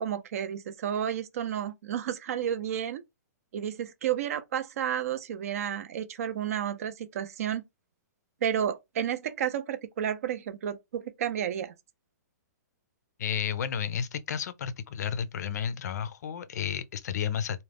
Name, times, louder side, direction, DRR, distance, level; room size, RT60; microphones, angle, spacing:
voice 1, 0.0-3.0 3.5-7.6 8.4-11.7, right 9 dB, 55° right, 0.4 m, -31 dB
voice 2, 13.2-17.6, left 8 dB, 65° left, 0.4 m, -32 dB
2.3 x 2.1 x 3.3 m
hypercardioid pair, 160°, 10 cm